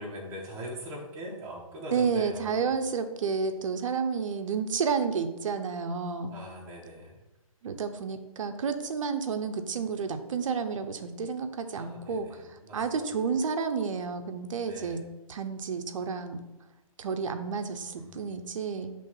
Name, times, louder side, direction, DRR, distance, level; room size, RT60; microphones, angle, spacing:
voice 1, 0.0-2.7 6.3-7.1 11.7-13.1 14.7-15.0 18.0-18.3, equal, 15° right, -3 dB, 1.4 m, -42 dB
voice 2, 1.9-6.3 7.6-15.0 15.3-16.4 17.0-18.9, right 5 dB, 60° right, 7 dB, 0.8 m, -31 dB
5.4 x 3.4 x 5.4 m, 0.99 s
hypercardioid pair, 145°, 18 cm